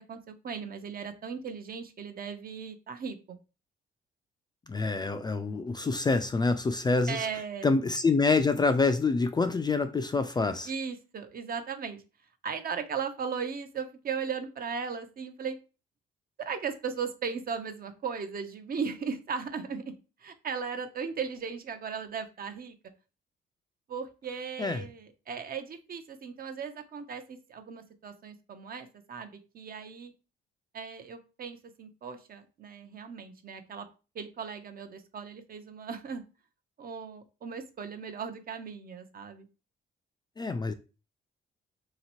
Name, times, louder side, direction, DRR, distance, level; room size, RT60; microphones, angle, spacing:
voice 1, 0.1-3.2 7.1-7.7 10.7-12.0 12.4-15.6 16.4-19.9 20.2-22.8 23.9-30.1 30.7-33.9 34.1-36.2 36.8-39.5, right 6 dB, 50° right, 0.6 m, -37 dB
voice 2, 4.7-7.3 7.6-10.7 24.6-24.8 40.4-40.7, left 3 dB, 20° left, 0.3 m, -26 dB
3.0 x 2.9 x 2.9 m
cardioid pair, 90°, 20 cm